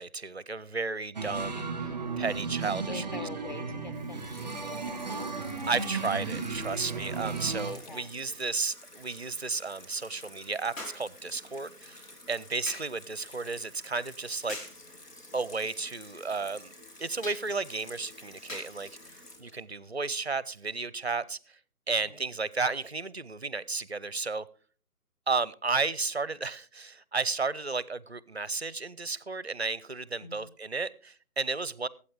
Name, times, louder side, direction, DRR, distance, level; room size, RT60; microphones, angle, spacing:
voice 1, 0.0-1.7 2.2-3.0 5.7-14.6 15.3-16.7 17.0-18.9 19.4-21.6 21.9-24.5 25.3-31.9, right 4 dB, 45° right, 0.5 m, -33 dB
sound 1, 1.1-7.7, right 4 dB, 5° right, 0.9 m, -35 dB
voice 2, 2.9-5.3 7.9-8.1 22.0-22.2 30.2-30.5, left 3 dB, 30° left, 1.2 m, -44 dB
Water tap faucet / Sink (filling or washing), 3.9-20.7, left 2 dB, 85° left, 3.0 m, -51 dB
sound 2, 10.8-11.1 12.7-13.0 14.5-14.8 17.2-17.5 18.5-18.8 19.8-20.0, left 2 dB, 55° left, 4.6 m, -41 dB
21.0 x 8.5 x 3.3 m
figure-of-eight pair, 165°, 46 cm